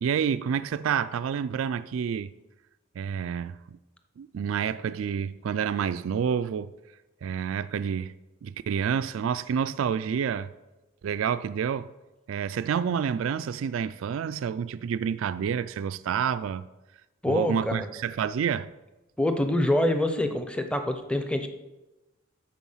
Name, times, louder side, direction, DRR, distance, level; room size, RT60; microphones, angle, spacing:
voice 1, 0.0-2.3 3.0-3.8 4.2-6.7 7.2-8.2 8.4-10.5 11.0-11.9 12.3-16.6 17.3-18.7, right 7 dB, 75° right, 0.3 m, -28 dB
voice 2, 17.2-17.9 19.2-21.5, left 1 dB, 5° left, 0.7 m, -25 dB
13.0 x 4.7 x 5.6 m
head